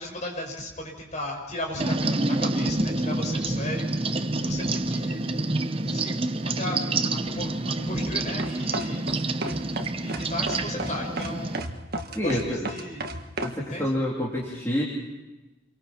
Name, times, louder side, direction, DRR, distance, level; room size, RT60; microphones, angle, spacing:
voice 1, 0.0-5.2 5.8-6.8 7.1-9.1 10.0-11.7 12.2-13.0 13.7-13.9, left 1 dB, 35° left, 1 dB, 5.6 m, -36 dB
sound 1, 1.8-11.6, right 2 dB, 25° right, 0.8 m, -28 dB
sound 2, 8.4-13.6, right 2 dB, 50° right, 1.5 m, -33 dB
voice 2, 12.1-12.7 13.4-14.8, equal, 15° left, -5 dB, 3.3 m, -28 dB
28.0 x 24.0 x 4.4 m, 1.1 s
head